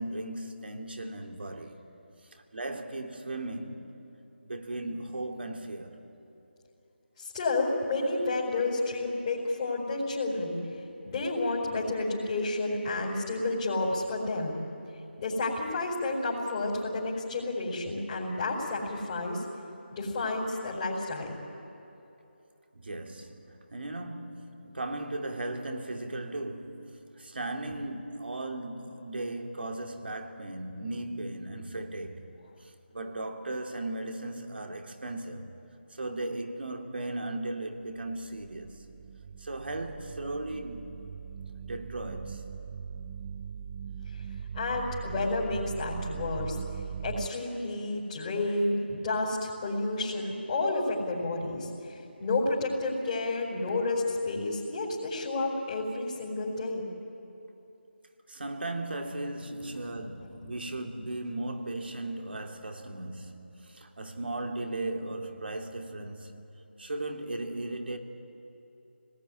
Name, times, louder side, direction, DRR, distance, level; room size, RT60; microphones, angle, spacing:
voice 1, 0.0-1.8 2.3-4.0 4.4-6.0 22.7-32.3 32.6-35.6 35.9-38.9 39.4-40.9 41.6-42.4 58.3-66.4 66.8-68.0, right 2 dB, 60° right, 2.8 m, -37 dB
voice 2, 7.2-10.6 11.0-14.6 15.2-19.4 19.9-21.3 27.7-27.8 44.1-44.2 44.5-46.6 47.0-56.9 60.2-60.3, left 2 dB, 25° left, 4.7 m, -30 dB
sound 1, 37.9-47.3, right 7 dB, 15° right, 0.6 m, -40 dB
27.0 x 19.5 x 9.8 m
figure-of-eight pair, 165°, 6 cm